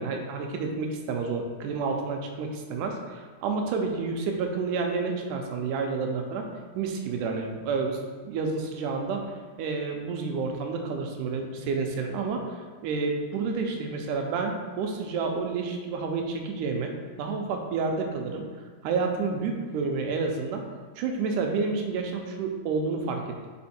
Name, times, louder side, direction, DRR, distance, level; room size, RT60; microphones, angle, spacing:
voice 1, 0.0-6.5 6.8-8.0 8.2-9.3 9.6-18.5 18.8-20.6 21.0-23.4, right 4 dB, 85° right, 3 dB, 2.2 m, -29 dB
5.3 x 4.6 x 4.3 m, 1.5 s
omnidirectional pair, 3.6 m